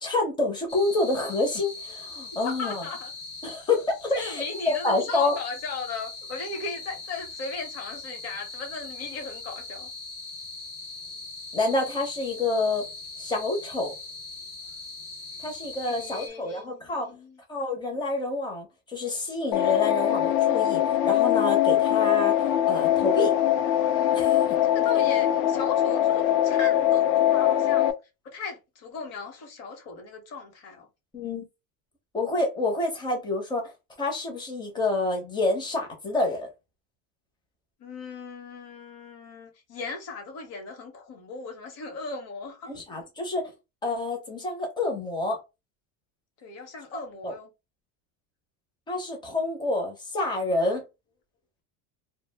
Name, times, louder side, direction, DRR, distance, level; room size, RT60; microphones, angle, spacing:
voice 1, 0.0-2.8 3.4-5.4 11.5-12.9 13.2-13.9 15.4-17.1 17.5-22.4 22.7-23.3 24.1-24.6 31.1-31.5 32.1-33.7 34.0-36.5 42.7-43.4 43.8-45.4 46.9-47.3 48.9-50.8, left 2 dB, 10° left, 0.5 m, -28 dB
sound 1, 0.7-16.3, left 3 dB, 90° left, 1.0 m, -41 dB
voice 2, 2.3-3.1 4.1-9.9 15.9-17.4 24.7-27.9 28.2-30.9 37.8-42.7 46.4-47.5, left 4 dB, 35° left, 0.8 m, -37 dB
sound 2, 19.5-27.9, left 11 dB, 65° left, 0.5 m, -22 dB
2.4 x 2.0 x 3.3 m
cardioid pair, 150°, 45 cm